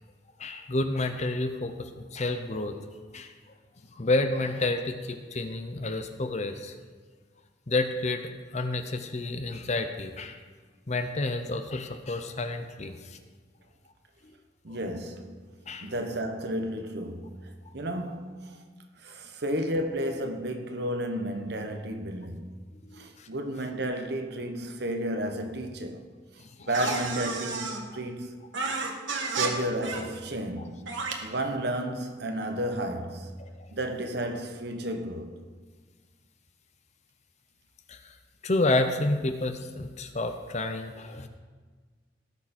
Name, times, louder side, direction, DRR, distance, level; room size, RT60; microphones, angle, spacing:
voice 1, 0.4-2.9 3.1-3.3 3.9-6.7 7.7-10.4 10.9-13.2 15.7-15.9 22.9-23.3 26.6-27.0 33.4-33.7 37.9-38.1 38.4-41.3, left 2 dB, 35° left, 0.8 m, -30 dB
voice 2, 14.6-15.5 15.8-18.6 19.0-22.7 22.9-26.1 26.7-28.4 29.3-33.4 33.7-35.4, right 1 dB, 55° right, 1.1 m, -32 dB
sound 1, 26.7-27.8 28.5-29.5 29.8-30.0 30.9-31.1, right 4 dB, 80° right, 1.5 m, -31 dB
17.5 x 6.7 x 4.4 m
head